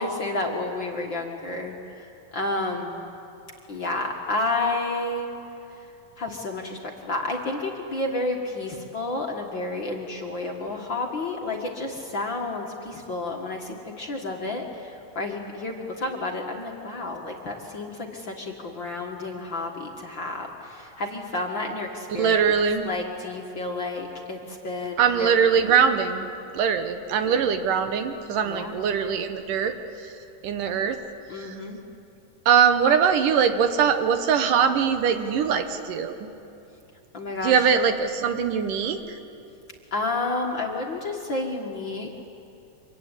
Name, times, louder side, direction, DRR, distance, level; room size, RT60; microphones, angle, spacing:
voice 1, 0.0-2.1 2.3-3.1 3.7-5.3 6.2-22.5 22.8-25.3 25.6-25.7 27.3-27.4 28.4-28.8 31.3-31.8 37.1-37.7 39.9-42.1, left 2 dB, 40° left, 1 dB, 1.9 m, -30 dB
voice 2, 22.2-22.9 25.0-26.3 26.5-30.1 30.4-31.0 31.4-31.6 32.5-36.2 37.4-39.2, right 7 dB, 75° right, 8 dB, 2.7 m, -22 dB
25.5 x 23.5 x 9.9 m, 2.7 s
omnidirectional pair, 4.0 m